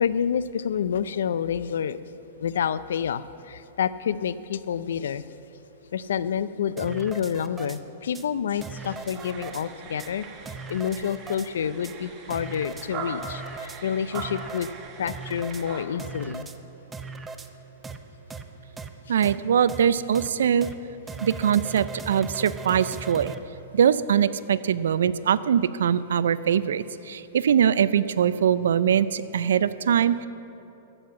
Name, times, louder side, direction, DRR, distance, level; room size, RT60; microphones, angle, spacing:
voice 1, 0.0-2.0 2.4-5.2 5.9-10.3 10.7-14.7 15.0-16.5 19.1-19.2, left 8 dB, 85° left, 15 dB, 0.4 m, -28 dB
sound 1, 6.8-7.8 8.1-8.2 8.6-9.6 10.0-10.1 10.5-11.5 11.8-11.9 12.3-12.9 13.2-13.8 14.1-14.7 15.1-15.6 16.0-16.6 16.9-17.5 17.8-18.0 18.3-18.4 18.8-18.9 19.2-19.4 19.7-19.8 20.1-20.3 20.6-20.7 21.1-23.4, right 3 dB, 15° right, 0.6 m, -38 dB
sound 2, 8.8-15.8, right 5 dB, 30° right, 1.5 m, -41 dB
voice 2, 19.1-20.7 21.2-23.3 23.7-30.3, right 8 dB, 85° right, 16 dB, 0.4 m, -22 dB
13.0 x 7.8 x 7.4 m, 2.9 s
hypercardioid pair, 140°, 0 cm